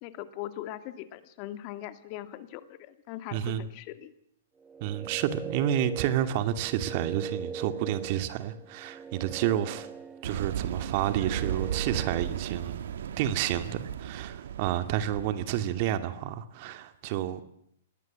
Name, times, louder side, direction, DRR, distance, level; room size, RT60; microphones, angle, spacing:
voice 1, 0.0-4.1, left 13 dB, 45° left, 2.0 m, -40 dB
voice 2, 3.3-3.7 4.8-9.9 10.2-12.8 13.2-17.4, right 11 dB, 45° right, 2.3 m, -30 dB
sound 1, 4.6-12.5, right 5 dB, 15° right, 1.3 m, -41 dB
sound 2, 10.2-15.7, right 9 dB, 65° right, 1.6 m, -35 dB
26.0 x 20.0 x 7.5 m
hypercardioid pair, 115°, 0 cm